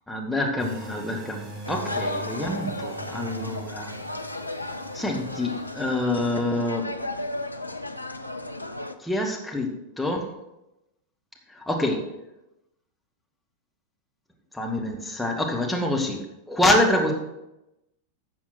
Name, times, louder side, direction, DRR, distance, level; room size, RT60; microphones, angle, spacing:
voice 1, 0.1-3.9 4.9-6.9 9.0-10.3 11.5-12.1 14.5-17.1, left 1 dB, 5° left, -1 dB, 1.9 m, -26 dB
sound 1, 0.6-6.5, right 1 dB, 35° right, 2.2 m, -42 dB
sound 2, 1.6-8.9, left 1 dB, 85° left, 0.6 m, -34 dB
12.0 x 7.1 x 4.5 m, 0.91 s
figure-of-eight pair, 90°, 0 cm